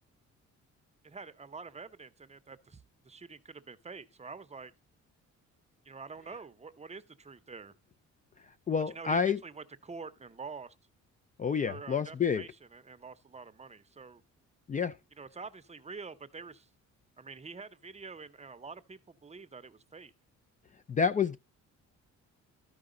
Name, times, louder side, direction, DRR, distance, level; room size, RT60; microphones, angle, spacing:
voice 1, 1.0-4.7 5.8-7.7 8.9-10.7 11.7-14.2 15.2-16.7 17.2-20.1, right 4 dB, 20° right, 0.7 m, -47 dB
voice 2, 8.7-9.4 11.4-12.4 14.7-14.9 20.9-21.4, left 6 dB, 25° left, 0.4 m, -28 dB
13.5 x 4.8 x 3.8 m
cardioid pair, 90°, 30 cm